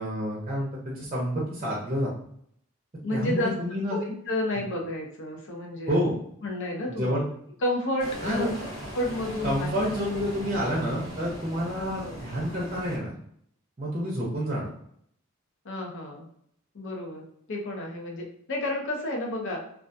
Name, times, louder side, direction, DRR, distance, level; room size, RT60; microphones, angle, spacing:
voice 1, 0.0-2.1 3.1-4.0 5.9-6.1 6.9-7.3 8.2-8.5 9.4-13.1 13.8-14.7, equal, 30° right, -4 dB, 0.5 m, -29 dB
voice 2, 3.0-3.5 3.9-5.9 6.4-7.1 7.6-8.5 8.9-9.8 11.8-12.2 15.6-16.3 16.7-19.6, left 1 dB, 60° left, 0 dB, 0.6 m, -31 dB
sound 1, 8.0-13.0, equal, 75° left, 1.3 m, -39 dB
2.3 x 2.2 x 2.5 m, 0.67 s
head